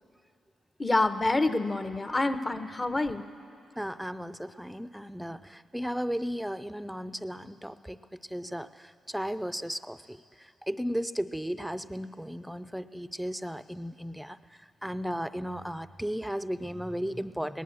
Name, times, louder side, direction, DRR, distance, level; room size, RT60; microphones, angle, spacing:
voice 1, 0.8-3.2, left 2 dB, 25° left, 9 dB, 0.8 m, -27 dB
voice 2, 3.8-17.6, equal, ahead, 14 dB, 0.5 m, -35 dB
19.0 x 9.3 x 7.7 m, 2.5 s
cardioid pair, 70°, 0 cm